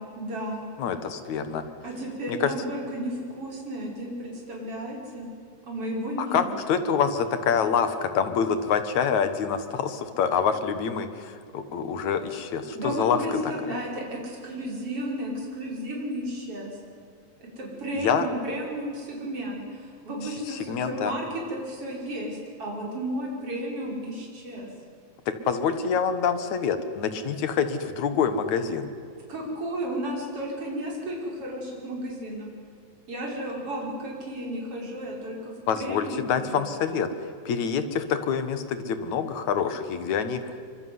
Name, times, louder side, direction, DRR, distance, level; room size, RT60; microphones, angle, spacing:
voice 1, 0.0-0.7 1.8-5.3 5.6-6.5 12.7-16.8 17.4-24.7 29.3-32.5 33.1-36.6, right 1 dB, 50° right, -1 dB, 6.6 m, -33 dB
voice 2, 0.8-1.6 2.3-2.5 6.2-13.4 18.0-18.3 20.2-21.1 25.3-28.9 35.7-40.6, left 7 dB, 75° left, 10 dB, 2.9 m, -26 dB
25.0 x 24.5 x 9.7 m, 2.3 s
omnidirectional pair, 3.4 m